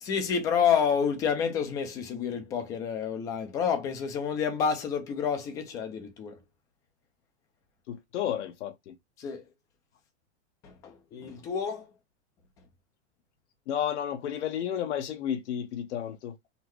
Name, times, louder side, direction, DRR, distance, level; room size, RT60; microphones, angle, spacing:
voice 1, 0.0-6.4 9.2-9.4 10.6-11.8, left 7 dB, 10° left, 0.3 m, -29 dB
voice 2, 7.9-8.9 13.7-16.4, left 9 dB, 75° left, 1.0 m, -32 dB
5.6 x 2.1 x 3.1 m
supercardioid pair, 160°, 35 cm